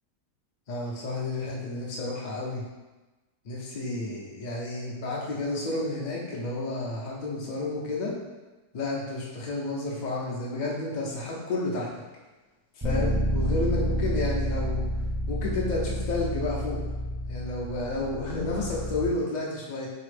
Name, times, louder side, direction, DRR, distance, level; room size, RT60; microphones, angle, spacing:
voice 1, 0.7-2.6 3.4-8.1 8.7-12.0 12.7-14.9 15.3-16.8 17.2-19.9, left 2 dB, 85° left, -3 dB, 0.4 m, -31 dB
Bass guitar, 12.8-19.1, equal, 30° right, 0.4 m, -29 dB
4.1 x 2.8 x 3.2 m, 1.2 s
omnidirectional pair, 1.7 m